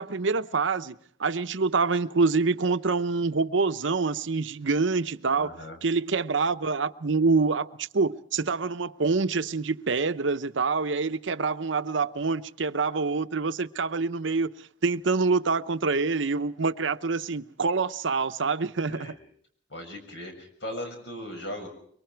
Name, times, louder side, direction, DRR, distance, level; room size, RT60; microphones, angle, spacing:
voice 1, 0.0-14.5 14.8-19.1, right 4 dB, 80° right, 0.8 m, -26 dB
voice 2, 5.3-5.8 18.9-19.1 19.7-21.7, left 1 dB, 70° left, 6.7 m, -38 dB
24.5 x 23.5 x 4.6 m
head